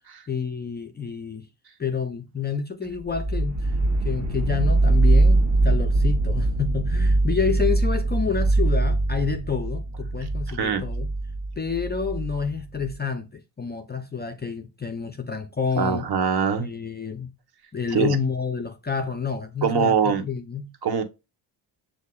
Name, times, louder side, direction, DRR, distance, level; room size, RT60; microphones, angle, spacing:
voice 1, 0.3-1.5 1.8-3.8 4.0-11.1 11.6-16.1 16.6-17.3 17.7-20.7, left 5 dB, 20° left, 0.5 m, -29 dB
sound 1, 3.1-12.9, right 2 dB, 35° right, 1.4 m, -22 dB
voice 2, 15.8-16.7 17.9-18.2 19.6-20.2 20.8-21.0, right 6 dB, 50° right, 1.2 m, -22 dB
7.6 x 2.8 x 2.2 m
cardioid pair, 115°, 48 cm